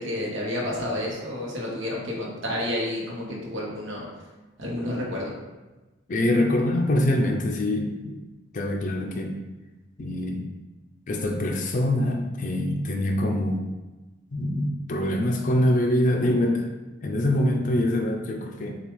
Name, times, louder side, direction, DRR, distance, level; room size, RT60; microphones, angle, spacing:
voice 1, 0.0-4.1 4.6-5.3, left 1 dB, 75° right, -3 dB, 1.1 m, -30 dB
voice 2, 6.1-8.1 8.5-9.3 10.0-10.5 11.1-13.6 14.3-16.7 17.0-18.7, left 1 dB, 40° left, 2 dB, 0.4 m, -24 dB
6.7 x 2.4 x 3.1 m, 1.1 s
head